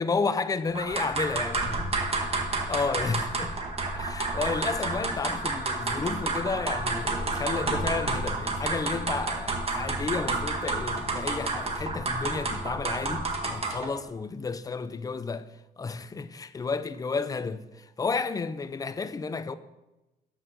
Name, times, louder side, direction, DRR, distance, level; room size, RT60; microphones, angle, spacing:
voice 1, 0.0-1.8 2.7-3.6 4.0-15.5 15.8-17.6 18.0-19.5, left 4 dB, 20° left, 0.5 m, -31 dB
sound 1, 0.7-13.9, right 3 dB, 35° right, 1.6 m, -30 dB
9.1 x 6.3 x 6.6 m
cardioid pair, 140°, 18 cm